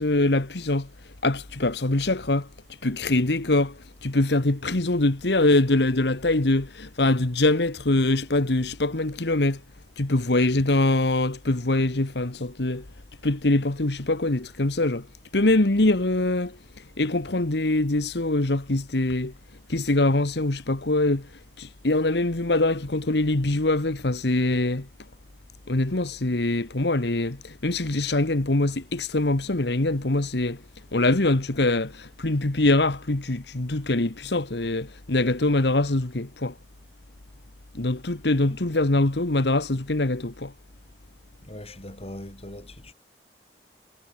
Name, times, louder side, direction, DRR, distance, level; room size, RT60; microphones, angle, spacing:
voice 1, 0.0-2.5 2.8-9.6 10.0-12.8 13.2-15.1 15.3-19.3 19.7-21.3 21.6-24.9 25.7-30.6 30.9-36.5 37.7-40.5, left 2 dB, 70° left, 1.5 m, -23 dB
voice 2, 41.4-42.9, left 1 dB, 35° left, 7.4 m, -40 dB
head